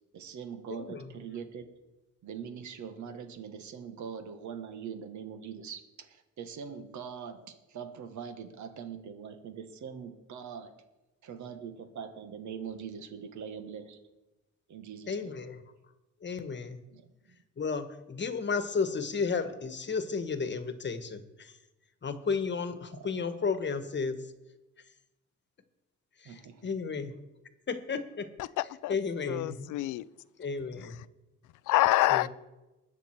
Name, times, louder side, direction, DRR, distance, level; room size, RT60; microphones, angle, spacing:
voice 1, 0.1-1.7 2.2-10.8 11.2-14.0 14.7-15.4 16.9-17.4 22.9-23.1 26.2-26.7, right 7 dB, 70° right, 1.6 m, -42 dB
voice 2, 0.7-1.1 15.1-15.6 16.2-16.8 17.6-21.6 22.0-24.3 26.2-27.1 27.7-28.3 28.9-29.7 30.4-31.0 32.0-32.3, left 5 dB, 35° left, 1.3 m, -33 dB
voice 3, 28.4-28.9 29.3-30.0 31.7-32.3, left 17 dB, 85° left, 0.5 m, -27 dB
20.5 x 7.2 x 4.5 m
cardioid pair, 90°, 30 cm